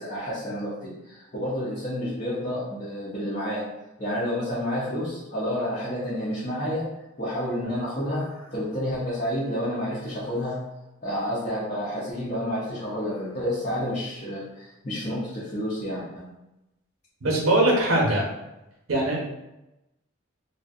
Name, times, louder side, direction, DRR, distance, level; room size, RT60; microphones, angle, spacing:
voice 1, 0.0-3.7 4.0-6.9 7.2-10.6 11.0-16.2, equal, 35° left, -10 dB, 0.6 m, -30 dB
voice 2, 17.2-18.2 18.9-19.2, right 1 dB, 80° right, -2 dB, 0.8 m, -21 dB
2.5 x 2.1 x 2.4 m, 0.94 s
head